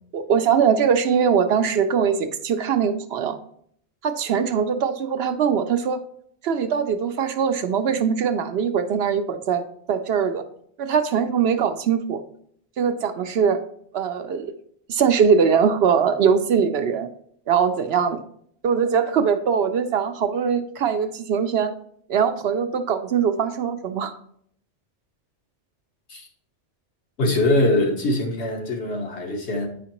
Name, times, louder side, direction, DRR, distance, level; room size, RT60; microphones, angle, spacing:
voice 1, 0.1-3.4 4.0-6.0 6.4-9.6 9.9-10.4 10.8-12.2 12.8-13.6 13.9-14.5 14.9-17.1 17.5-18.2 18.6-21.7 22.1-24.1, right 7 dB, 70° right, 0.8 m, -21 dB
voice 2, 27.2-29.7, left 1 dB, 65° left, 1.4 m, -22 dB
9.0 x 5.0 x 2.9 m
omnidirectional pair, 1.2 m